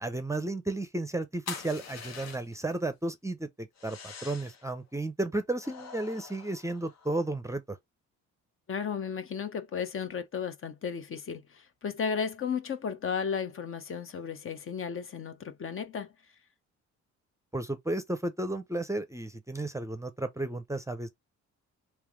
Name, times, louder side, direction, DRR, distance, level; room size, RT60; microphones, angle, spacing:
voice 1, 0.0-7.8 17.5-21.1, right 2 dB, 10° right, 0.6 m, -33 dB
sound 1, 1.5-2.7 3.8-4.7 5.6-7.3, left 6 dB, 60° left, 1.1 m, -44 dB
voice 2, 8.7-16.1, left 6 dB, 45° left, 0.8 m, -34 dB
3.3 x 3.1 x 3.5 m
cardioid pair, 90°, 30 cm